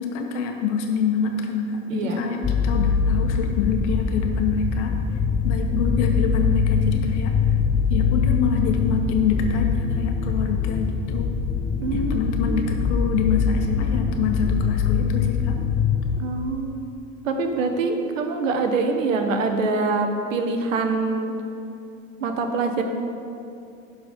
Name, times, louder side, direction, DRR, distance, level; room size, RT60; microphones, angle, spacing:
voice 1, 0.0-4.9 5.4-7.3 7.9-11.3 11.9-15.6, left 6 dB, 60° left, 3 dB, 1.2 m, -26 dB
voice 2, 1.9-2.2 11.8-12.7 16.2-16.8 17.2-21.3 22.2-22.8, right 3 dB, 75° right, 5 dB, 1.1 m, -25 dB
sound 1, 2.4-16.2, left 5 dB, 10° left, 0.3 m, -23 dB
11.5 x 4.0 x 5.3 m, 2.6 s
hypercardioid pair, 85°, 39 cm